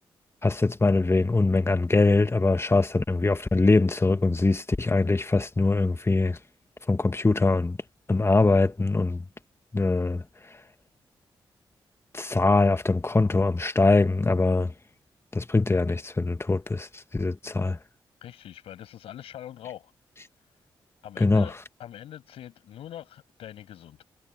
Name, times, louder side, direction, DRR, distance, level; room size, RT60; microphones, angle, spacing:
voice 1, 0.4-6.4 6.9-7.8 8.1-9.2 9.7-10.2 12.1-14.7 15.3-17.8 21.2-21.5, left 3 dB, 25° left, 1.9 m, -22 dB
voice 2, 18.2-19.9 21.0-24.0, left 11 dB, 85° left, 7.8 m, -43 dB
supercardioid pair, 45°, 10 cm